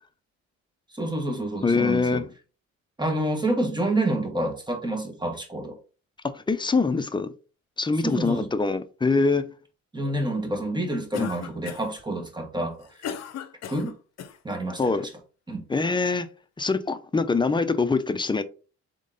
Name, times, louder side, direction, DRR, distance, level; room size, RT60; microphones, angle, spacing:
voice 1, 0.9-2.2 3.0-5.8 8.0-8.5 9.9-12.9 13.7-13.9 14.4-14.9 15.5-15.6, right 1 dB, 15° right, 1.5 m, -28 dB
voice 2, 1.6-2.3 6.3-7.3 7.8-9.5 11.2-11.3 14.8-15.1 15.7-16.3 16.6-18.4, left 4 dB, 15° left, 0.5 m, -24 dB
Cough, 11.1-12.0 12.6-14.4, left 8 dB, 60° left, 0.7 m, -37 dB
3.7 x 3.6 x 3.8 m
cardioid pair, 90°, 30 cm